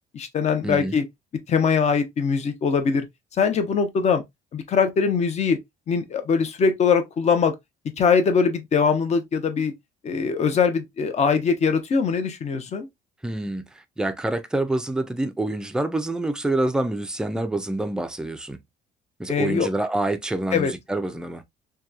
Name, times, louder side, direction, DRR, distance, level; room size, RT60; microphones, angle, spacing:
voice 1, 0.1-1.0 1.5-3.1 3.4-4.2 4.5-5.6 5.9-7.5 8.0-9.7 10.0-12.9 19.3-19.7 20.5-20.7, left 5 dB, 40° left, 0.6 m, -22 dB
voice 2, 13.2-13.6 14.0-18.6 19.2-21.4, right 2 dB, 5° right, 0.3 m, -26 dB
2.8 x 2.2 x 2.3 m
cardioid pair, 110°, 17 cm